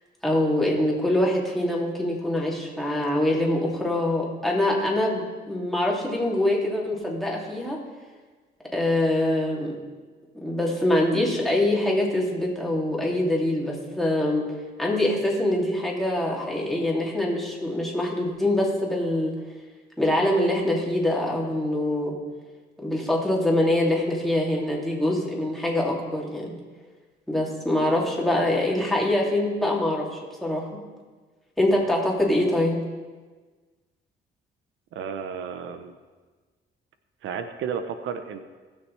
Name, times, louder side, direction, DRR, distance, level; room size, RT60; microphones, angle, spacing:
voice 1, 0.2-7.8 8.7-9.8 10.4-14.4 14.8-19.3 20.0-22.1 22.8-26.5 27.3-30.7 31.6-32.8, left 1 dB, ahead, -3 dB, 2.6 m, -24 dB
voice 2, 34.9-35.9 37.2-38.4, right 7 dB, 80° right, 9 dB, 0.7 m, -32 dB
18.5 x 6.4 x 3.3 m, 1.4 s
cardioid pair, 90°, 20 cm